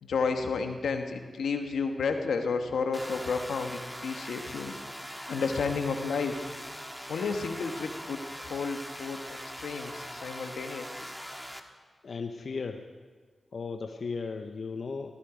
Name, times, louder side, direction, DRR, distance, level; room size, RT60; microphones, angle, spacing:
voice 1, 0.0-4.8 5.3-6.5 7.1-9.2 9.6-10.9, left 5 dB, 90° left, 5 dB, 1.2 m, -31 dB
sound 1, 2.9-11.6, equal, 5° right, 1.7 m, -41 dB
voice 2, 12.0-12.9 13.5-15.1, left 4 dB, 70° left, 5 dB, 0.8 m, -36 dB
18.0 x 15.0 x 5.0 m, 1.5 s
cardioid pair, 45°, 0 cm